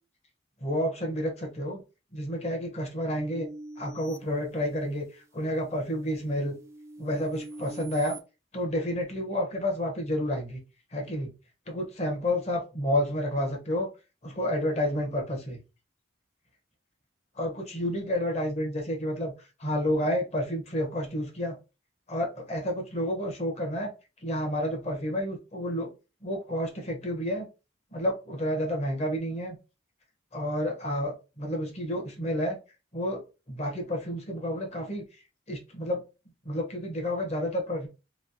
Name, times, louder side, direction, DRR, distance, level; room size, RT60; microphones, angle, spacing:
voice 1, 0.6-1.8 2.1-3.5 3.8-6.6 7.0-8.2 8.5-10.6 10.9-11.3 11.7-13.9 14.2-15.6 17.3-19.3 19.6-21.6 22.1-23.9 24.2-25.9 26.2-27.5 27.9-29.6 30.3-32.6 32.9-33.2 33.5-35.0 35.5-36.0 36.4-37.9, left 1 dB, 35° left, 2 dB, 0.9 m, -30 dB
sound 1, 3.2-5.1 5.7-8.2, right 1 dB, 15° right, 0.3 m, -44 dB
3.1 x 2.7 x 2.6 m, 0.30 s
head